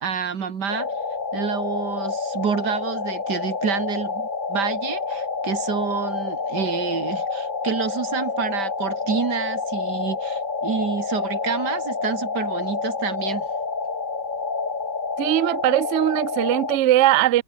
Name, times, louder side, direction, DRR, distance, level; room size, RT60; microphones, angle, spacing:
voice 1, 0.0-0.9 1.3-13.5, right 7 dB, 85° right, 2.4 m, -28 dB
sound 1, 0.7-16.8, left 4 dB, 30° left, 1.5 m, -28 dB
voice 2, 15.2-17.4, right 14 dB, 65° right, 0.7 m, -20 dB
omnidirectional pair, 1.8 m